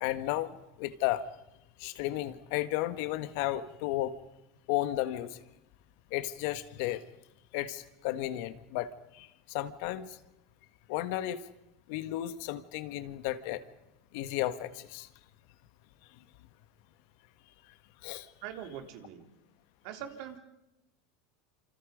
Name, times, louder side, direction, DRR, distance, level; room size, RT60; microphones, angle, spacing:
voice 1, 0.0-1.2 1.8-4.1 4.7-5.4 6.1-7.0 7.5-10.2 10.9-11.5 11.9-13.6 14.1-15.1 18.0-18.3, left 14 dB, 70° left, 12 dB, 1.6 m, -33 dB
voice 2, 18.4-19.3 19.8-20.4, right 9 dB, 65° right, 6 dB, 3.5 m, -42 dB
27.5 x 26.5 x 5.3 m, 0.91 s
supercardioid pair, 115°, 0 cm